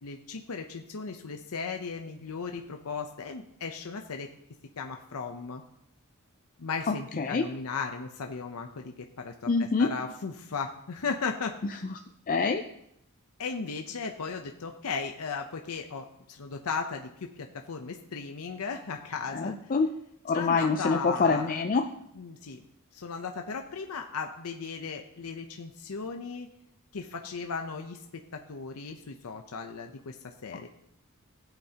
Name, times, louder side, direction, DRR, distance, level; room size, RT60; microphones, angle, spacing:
voice 1, 0.0-4.3 4.8-5.6 6.6-11.6 13.4-19.6 20.3-21.6 22.2-22.6 22.9-26.5 26.9-28.0 28.3-30.7, left 5 dB, 80° left, 4 dB, 0.7 m, -36 dB
voice 2, 6.9-7.5 9.5-9.9 12.3-12.6 19.3-19.9 20.2-21.9, left 4 dB, 40° left, 5 dB, 0.5 m, -26 dB
15.5 x 8.1 x 2.9 m, 0.77 s
head